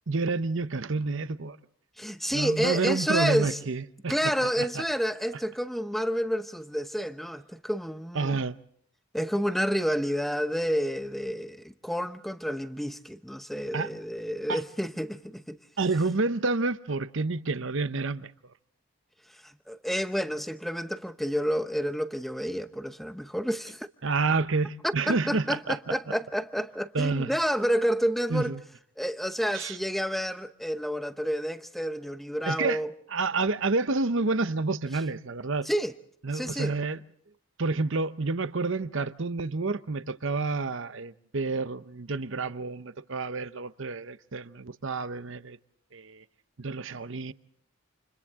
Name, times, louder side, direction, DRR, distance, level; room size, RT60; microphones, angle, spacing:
voice 1, 0.1-1.6 2.3-4.1 4.6-4.7 8.1-8.6 13.7-13.9 14.5-14.6 15.8-18.3 24.0-25.8 26.9-27.3 28.3-28.6 29.5-29.8 32.5-32.8 33.1-35.7 36.2-37.0 37.6-45.6 45.9-46.2 46.6-47.3, right 3 dB, 60° right, 0.8 m, -29 dB
voice 2, 2.0-3.6 4.1-8.4 9.1-15.6 19.3-23.9 24.8-28.5 29.0-32.9 35.6-35.9 36.3-36.7, equal, ahead, 0.8 m, -29 dB
29.5 x 28.5 x 3.7 m
head